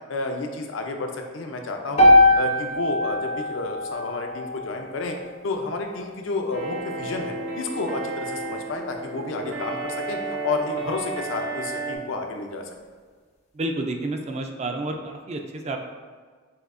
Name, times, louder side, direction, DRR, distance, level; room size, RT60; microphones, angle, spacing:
voice 1, 0.1-5.2 5.4-10.2 10.4-12.7, left 3 dB, 85° left, 3 dB, 0.5 m, -30 dB
sound 1, 2.0-6.1, left 1 dB, 35° left, 0.5 m, -21 dB
sound 2, 6.5-12.0, right 3 dB, 85° right, 0.6 m, -32 dB
voice 2, 13.6-15.8, right 2 dB, 35° right, 4 dB, 0.3 m, -30 dB
6.2 x 2.7 x 2.5 m, 1.5 s
head